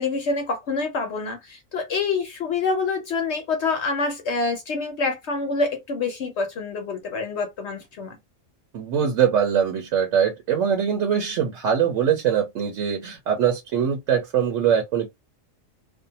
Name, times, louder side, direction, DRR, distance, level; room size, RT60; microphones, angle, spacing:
voice 1, 0.0-8.1, left 4 dB, 65° left, 0.9 m, -26 dB
voice 2, 8.7-15.1, right 8 dB, 70° right, 1.0 m, -22 dB
2.6 x 2.2 x 2.7 m
omnidirectional pair, 1.4 m